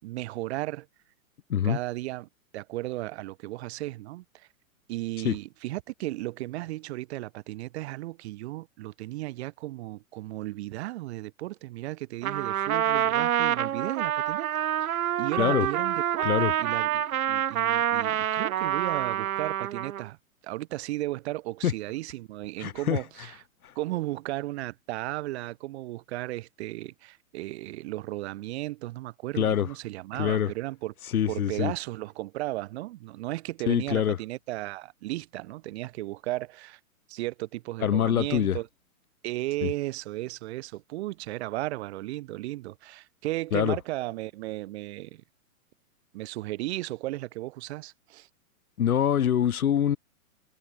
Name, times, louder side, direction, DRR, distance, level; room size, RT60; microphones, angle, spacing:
voice 1, 0.0-0.9 1.6-4.5 4.9-14.5 14.8-20.2 20.4-23.4 23.8-30.9 31.3-36.8 37.1-38.7 39.2-45.2 46.1-48.3, right 18 dB, 50° right, 5.1 m, -35 dB
Trumpet, 12.2-20.1, right 11 dB, 75° right, 1.2 m, -27 dB
voice 2, 22.6-23.0 29.4-29.7 30.2-30.5 31.1-31.7 33.7-34.2 37.8-38.6 39.6-39.7 43.5-43.8 48.8-50.0, left 9 dB, 85° left, 1.6 m, -24 dB
hypercardioid pair, 140°, 43 cm